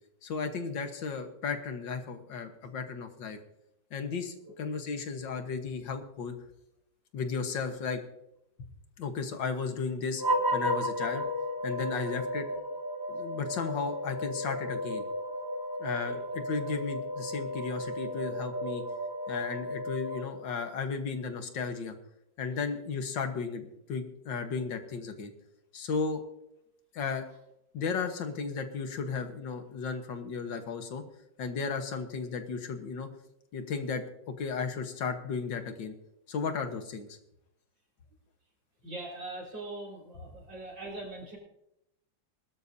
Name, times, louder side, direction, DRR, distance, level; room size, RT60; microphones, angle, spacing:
voice 1, 0.2-3.4 3.9-6.4 7.1-8.0 9.0-10.2 10.5-11.2 11.6-12.5 13.1-15.0 15.8-18.8 19.3-22.0 22.4-25.3 25.7-26.2 26.9-27.2 27.7-31.0 31.4-33.1 33.5-35.9 36.3-37.2, left 5 dB, 70° left, 7 dB, 2.0 m, -34 dB
sound 1, 10.2-20.7, equal, 25° right, 0.4 m, -34 dB
voice 2, 38.8-41.4, right 2 dB, 75° right, -2 dB, 5.6 m, -41 dB
21.5 x 12.5 x 2.7 m, 0.80 s
omnidirectional pair, 2.1 m